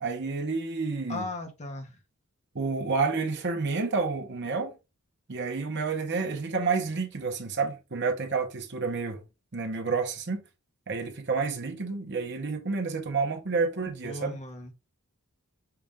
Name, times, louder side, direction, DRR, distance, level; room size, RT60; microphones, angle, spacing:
voice 1, 0.0-1.3 2.5-4.7 5.3-9.2 9.5-10.4 10.9-14.4, right 4 dB, 50° right, 1.0 m, -29 dB
voice 2, 1.1-2.0 14.0-14.7, left 2 dB, 30° left, 1.0 m, -37 dB
5.8 x 2.6 x 3.5 m
head